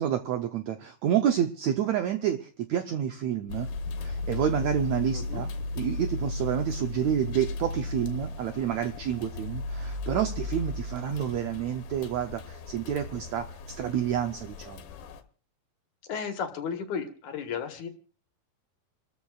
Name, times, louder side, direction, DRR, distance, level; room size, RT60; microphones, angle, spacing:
voice 1, 0.0-3.7 4.0-5.5 5.8-13.4 13.8-14.8, right 9 dB, 80° right, 6 dB, 1.6 m, -29 dB
sound 1, 3.5-15.2, left 2 dB, 80° left, 2.9 m, -35 dB
voice 2, 5.1-5.4 16.1-17.9, left 6 dB, 60° left, 5 dB, 2.7 m, -34 dB
29.0 x 14.0 x 2.4 m, 0.41 s
omnidirectional pair, 4.1 m